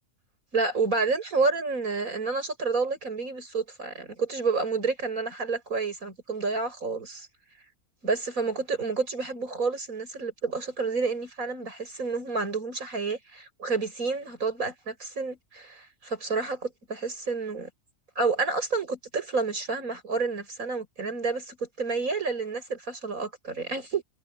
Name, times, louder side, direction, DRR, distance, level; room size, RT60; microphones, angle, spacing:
voice 1, 0.5-7.3 8.0-17.7 18.2-24.0, right 4 dB, 85° right, 7.1 m, -29 dB
omnidirectional pair, 1.4 m